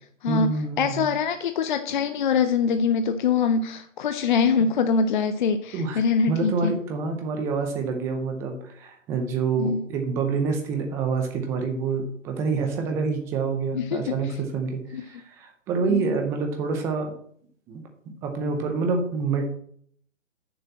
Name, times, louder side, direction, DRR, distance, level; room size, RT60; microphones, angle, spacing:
voice 1, 0.3-1.0 4.6-4.7 5.7-6.0 6.3-17.1 17.7-17.8 18.2-19.4, right 4 dB, 5° right, 4 dB, 0.5 m, -27 dB
voice 2, 0.8-6.7 9.6-9.8 13.7-14.2 14.9-15.0 15.9-16.1, left 6 dB, 40° left, 9 dB, 0.6 m, -23 dB
6.8 x 6.5 x 7.4 m, 0.63 s
hypercardioid pair, 145°, 39 cm